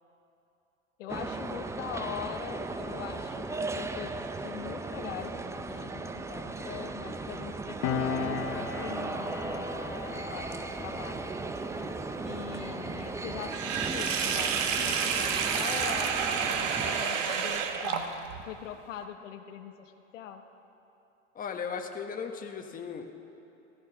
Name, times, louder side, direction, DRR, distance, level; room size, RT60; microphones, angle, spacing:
voice 1, 1.0-3.5 3.7-5.4 5.7-11.5 12.2-20.4, left 9 dB, 75° left, 6 dB, 1.2 m, -42 dB
sound 1, 1.1-17.0, right 3 dB, 10° right, 0.5 m, -37 dB
Piano, 7.8-14.8 15.1-15.3, left 6 dB, 40° left, 1.0 m, -38 dB
Sink (filling or washing), 13.5-18.4, right 6 dB, 80° right, 1.4 m, -29 dB
voice 2, 21.3-23.1, left 6 dB, 20° left, 4 dB, 1.2 m, -36 dB
15.0 x 14.0 x 5.9 m, 2.9 s
hypercardioid pair, 105°, 38 cm